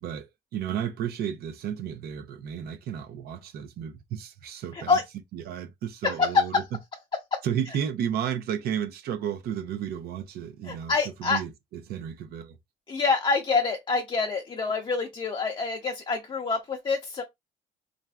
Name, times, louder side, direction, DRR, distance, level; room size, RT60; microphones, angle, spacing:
voice 1, 0.0-5.0 5.3-6.6 7.4-12.6, right 9 dB, 65° right, 0.6 m, -33 dB
voice 2, 4.7-5.0 6.0-6.6 7.3-7.4 10.7-11.4 12.9-17.2, left 4 dB, 30° left, 0.5 m, -26 dB
3.2 x 2.5 x 2.3 m
cardioid pair, 110°, 17 cm